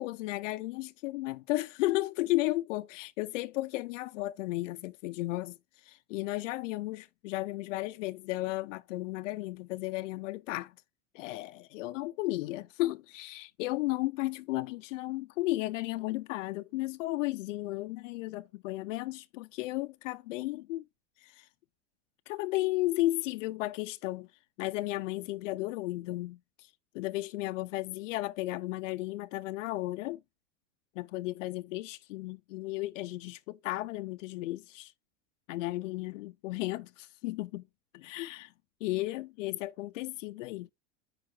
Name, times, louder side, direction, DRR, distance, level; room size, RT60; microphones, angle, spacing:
voice 1, 0.0-5.6 5.8-10.7 11.1-20.8 21.2-21.5 22.3-24.3 24.6-26.4 26.9-30.2 31.0-34.9 35.5-37.6 37.9-38.5 38.8-40.7, left 18 dB, 90° left, 0.5 m, -34 dB
4.9 x 4.6 x 5.8 m
supercardioid pair, 170°, 36 cm